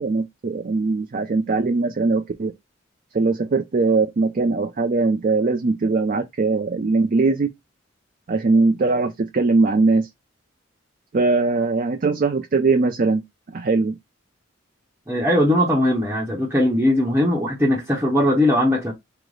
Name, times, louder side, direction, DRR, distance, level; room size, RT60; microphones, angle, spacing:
voice 1, 0.0-2.5 3.1-7.5 8.3-10.1 11.1-13.2 13.5-13.9, right 3 dB, 45° right, 0.4 m, -20 dB
voice 2, 15.1-18.9, left 1 dB, 10° right, 0.8 m, -19 dB
4.8 x 2.0 x 3.8 m
head